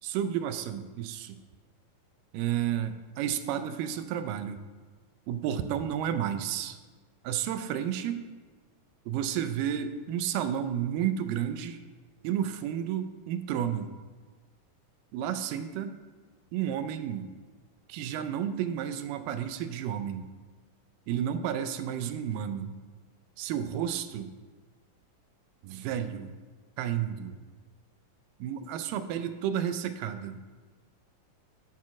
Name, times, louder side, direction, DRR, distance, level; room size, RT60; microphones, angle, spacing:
voice 1, 0.0-1.4 2.3-4.6 5.3-6.8 7.2-8.2 9.1-11.8 12.2-13.9 15.1-16.0 16.5-17.3 17.9-20.3 21.1-22.7 23.4-24.3 25.6-26.3 26.8-27.4 28.4-30.4, right 9 dB, 80° right, 9 dB, 2.1 m, -31 dB
8.3 x 4.5 x 6.0 m, 1.4 s
omnidirectional pair, 4.1 m